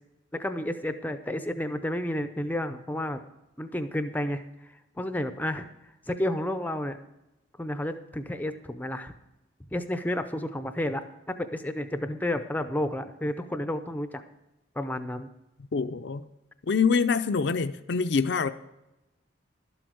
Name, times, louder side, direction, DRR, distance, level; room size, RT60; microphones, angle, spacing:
voice 1, 0.3-3.2 3.6-5.7 6.1-7.0 7.6-9.1 9.7-11.0 11.3-14.2 14.8-15.3, left 1 dB, 10° left, 0.5 m, -31 dB
voice 2, 15.7-16.2 16.7-18.5, left 5 dB, 55° left, 0.5 m, -25 dB
12.0 x 7.9 x 6.3 m
head